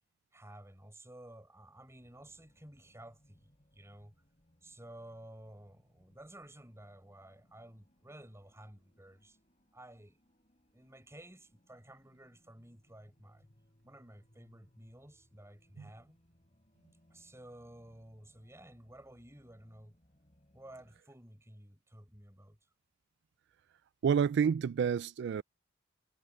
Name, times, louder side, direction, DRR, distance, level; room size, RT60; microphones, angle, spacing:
voice 1, 0.3-4.1 4.6-9.4 9.7-10.2 10.7-13.5 13.8-16.2 17.1-20.0 20.5-22.6, right 1 dB, 15° right, 5.6 m, -53 dB
sound 1, 1.9-21.0, equal, 35° left, 3.7 m, -69 dB
voice 2, 24.0-25.4, right 7 dB, 60° right, 0.3 m, -29 dB
head